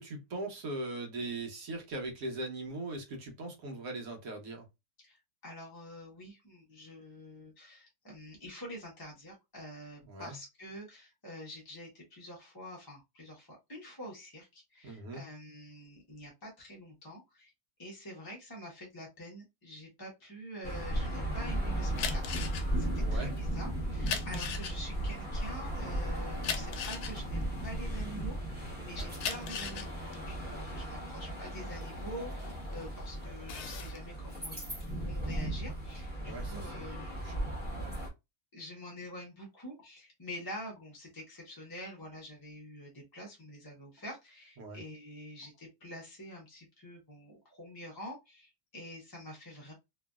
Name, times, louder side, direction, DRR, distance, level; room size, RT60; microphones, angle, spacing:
voice 1, 0.0-4.6 10.0-10.3 14.8-15.2 22.9-23.3 28.8-29.1 36.2-36.9 37.1-37.3 44.6-44.8, right 2 dB, 65° right, 1.3 m, -40 dB
voice 2, 5.0-17.5 17.8-22.4 22.8-28.5 28.8-37.2 38.5-49.7, equal, 20° left, 0.6 m, -47 dB
sound 1, 20.6-38.1, right 1 dB, 10° right, 0.9 m, -36 dB
sound 2, 21.9-28.5 29.0-32.8 33.2-34.0, left 7 dB, 80° left, 1.1 m, -39 dB
3.0 x 2.6 x 2.3 m
omnidirectional pair, 1.7 m